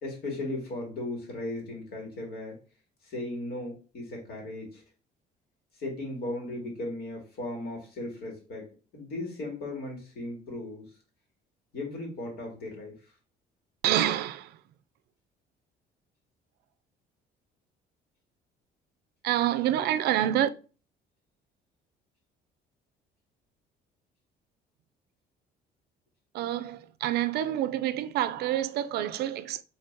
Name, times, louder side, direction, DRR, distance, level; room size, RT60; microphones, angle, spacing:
voice 1, 0.0-2.6 3.0-4.8 5.7-8.7 8.9-10.9 11.7-13.1, left 2 dB, 65° left, 2.2 m, -36 dB
voice 2, 13.8-14.5 19.2-20.5 26.3-29.6, right 12 dB, 75° right, 0.4 m, -27 dB
5.6 x 3.3 x 2.7 m
cardioid pair, 110°, 17 cm